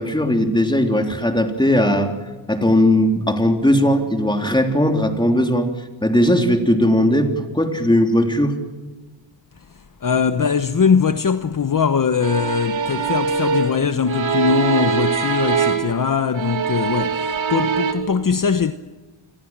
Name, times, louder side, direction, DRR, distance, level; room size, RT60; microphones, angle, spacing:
voice 1, 0.0-2.1 2.5-5.7 6.0-8.6, left 1 dB, 10° left, 3.5 m, -18 dB
voice 2, 10.0-18.7, left 6 dB, 40° left, 1.0 m, -21 dB
sound 1, 12.2-16.0 16.3-17.9, right 6 dB, 75° right, 3.1 m, -22 dB
29.0 x 22.0 x 7.5 m
cardioid pair, 85°, 48 cm